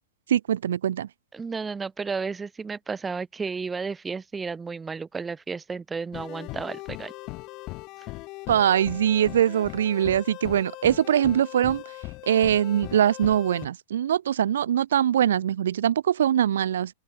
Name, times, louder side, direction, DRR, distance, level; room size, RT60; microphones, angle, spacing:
voice 1, 0.3-1.1 8.5-11.8 12.3-16.9, right 10 dB, 80° right, 1.9 m, -22 dB
voice 2, 1.3-7.1 8.0-8.1, right 5 dB, 15° right, 3.6 m, -33 dB
sound 1, 6.1-13.7, left 22 dB, 40° left, 5.5 m, -39 dB
open air
hypercardioid pair, 130°, 0 cm